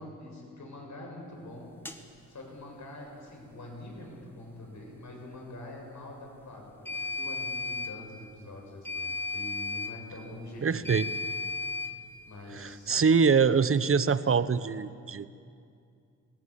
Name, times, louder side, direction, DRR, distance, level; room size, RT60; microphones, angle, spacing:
voice 1, 0.0-1.7 2.3-10.9 12.2-13.0, left 1 dB, 60° left, 0 dB, 7.2 m, -45 dB
sound 1, 1.9-2.0 6.9-7.9 8.8-9.9 10.8-11.9, left 3 dB, 5° left, 1.9 m, -34 dB
voice 2, 10.6-11.1 12.5-15.3, right 5 dB, 40° right, 15 dB, 0.9 m, -24 dB
20.5 x 17.5 x 8.1 m, 2.4 s
cardioid pair, 50°, 33 cm